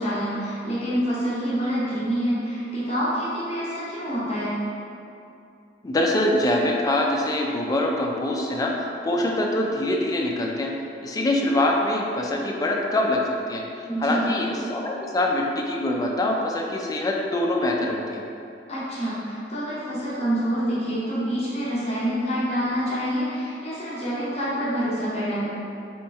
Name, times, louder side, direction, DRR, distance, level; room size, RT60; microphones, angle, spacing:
voice 1, 0.0-4.6 13.9-14.3 18.7-25.4, equal, 35° left, -9 dB, 0.8 m, -27 dB
voice 2, 5.8-10.7 11.0-13.6 14.0-18.2, left 1 dB, 20° left, 0 dB, 0.3 m, -24 dB
3.0 x 3.0 x 3.4 m, 2.7 s
head